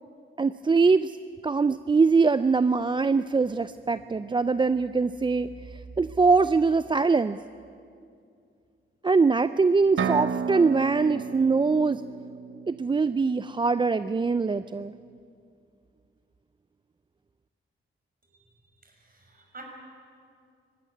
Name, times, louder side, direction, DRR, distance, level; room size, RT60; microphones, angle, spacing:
voice 1, 0.4-1.2 1.4-5.5 6.0-7.4 9.0-12.0 12.7-14.9, right 4 dB, 25° right, 14 dB, 0.4 m, -23 dB
sound 1, 10.0-13.7, right 6 dB, 70° right, 0.9 m, -33 dB
voice 2, 18.8-19.6, right 3 dB, 45° right, 1 dB, 6.0 m, -48 dB
20.0 x 15.0 x 9.8 m, 2.4 s
cardioid pair, 85°, 21 cm